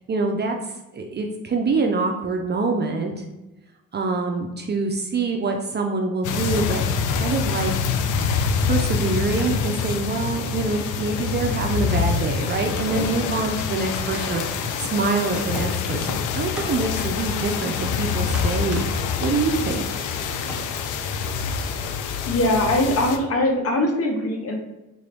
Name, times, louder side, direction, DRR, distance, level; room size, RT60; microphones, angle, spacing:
voice 1, 0.1-0.6 0.9-3.2 3.9-7.7 8.6-18.8 19.2-19.8, right 3 dB, 35° right, 3 dB, 0.5 m, -25 dB
sound 1, 6.2-23.2, left 6 dB, 80° left, 0.5 m, -26 dB
sound 2, 9.0-9.5 9.9-10.0 10.4-10.5 11.1-12.0 12.5-12.6 12.8-13.3 14.1-14.8 15.1-16.0 16.5-16.7 17.1-17.8 18.2-18.9 19.3-19.4 19.8-20.6 21.5-21.9 22.2-22.3, equal, 5° right, 0.8 m, -36 dB
voice 2, 22.3-24.5, left 1 dB, 50° left, 2 dB, 0.8 m, -21 dB
3.8 x 2.5 x 3.3 m, 1.0 s
cardioid pair, 90°, 30 cm